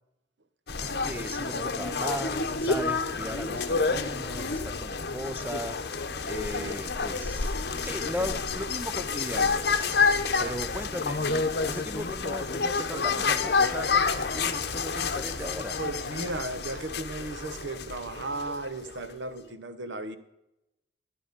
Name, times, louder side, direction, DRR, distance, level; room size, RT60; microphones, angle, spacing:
sound 1, 0.7-19.1, left 4 dB, 60° left, 0.9 m, -29 dB
voice 1, 0.8-15.8, equal, 10° right, 0.6 m, -37 dB
voice 2, 6.4-6.8 10.2-10.6 15.8-20.2, right 2 dB, 85° right, 1.1 m, -36 dB
12.5 x 10.0 x 5.2 m
head